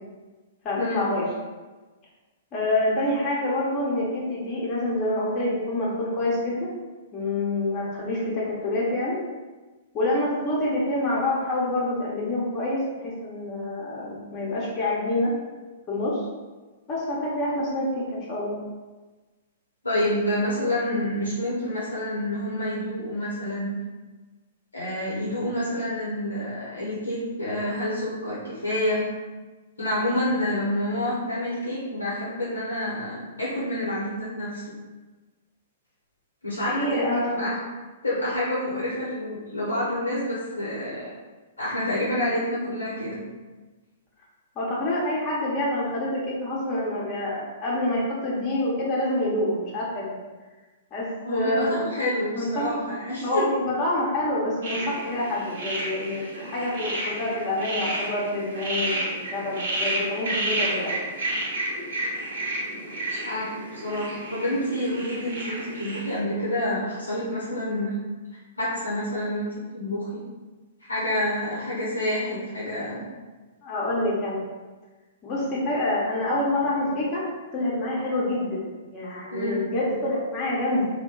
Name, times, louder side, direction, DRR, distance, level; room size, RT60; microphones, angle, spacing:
voice 1, 0.6-1.3 2.5-6.7 7.1-9.2 9.9-15.3 15.9-16.2 16.9-18.6 36.7-37.5 44.6-50.1 50.9-51.9 52.3-52.7 53.2-60.9 73.6-74.4 75.2-77.2 77.5-78.6 78.9-80.9, left 1 dB, 30° left, -6 dB, 0.9 m, -27 dB
voice 2, 19.8-23.7 24.7-29.0 29.8-34.6 36.4-37.6 38.0-41.1 41.6-43.2 51.2-53.4 63.1-67.9 68.6-70.2 70.9-73.0 79.3-79.6, left 1 dB, 80° left, -7 dB, 0.8 m, -28 dB
sound 1, 54.6-66.2, right 1 dB, 60° right, 0.9 m, -31 dB
2.9 x 2.2 x 3.7 m, 1.3 s
figure-of-eight pair, 110°, 0 cm